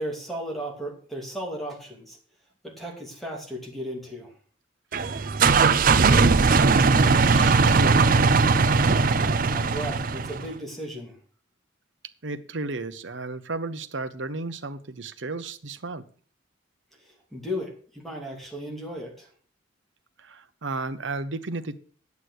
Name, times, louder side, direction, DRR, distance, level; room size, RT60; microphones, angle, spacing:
voice 1, 0.0-2.2 2.6-4.3 9.5-11.2 17.0-19.3, equal, ahead, 2.7 m, -35 dB
sound 1, 4.9-10.5, right 4 dB, 45° right, 0.5 m, -19 dB
voice 2, 5.0-8.5 12.2-16.0 20.2-21.8, right 3 dB, 70° right, 0.9 m, -34 dB
9.8 x 8.3 x 6.3 m
head